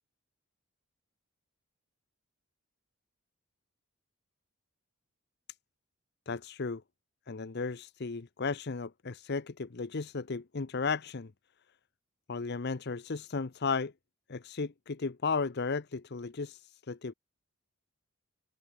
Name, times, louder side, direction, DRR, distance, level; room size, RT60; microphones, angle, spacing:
voice 1, 6.3-6.8 7.3-11.3 12.3-13.9 14.3-17.1, left 4 dB, 50° left, 0.7 m, -35 dB
head